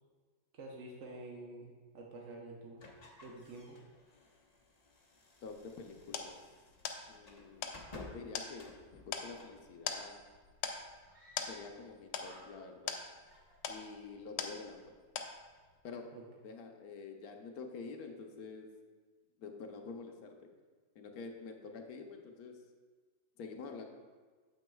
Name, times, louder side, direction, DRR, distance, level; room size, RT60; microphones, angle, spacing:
voice 1, 0.6-2.8 3.2-3.8 16.1-16.2, right 2 dB, 55° right, -1 dB, 0.9 m, -48 dB
sound 1, 2.8-9.6, left 3 dB, 35° left, 0.6 m, -55 dB
voice 2, 5.4-6.3 7.1-7.8 8.1-10.2 11.4-13.0 13.7-14.9 15.8-16.0 16.4-18.7 19.4-20.5 20.9-22.6 23.4-23.8, left 4 dB, 65° left, 3 dB, 1.1 m, -47 dB
sound 2, 5.5-14.9 15.2-15.7, left 7 dB, 80° left, 1.4 m, -43 dB
Screaming, 11.1-11.9 12.1-12.9 13.3-14.2, equal, 30° right, 1.2 m, -62 dB
9.1 x 7.9 x 2.3 m, 1.5 s
omnidirectional pair, 2.0 m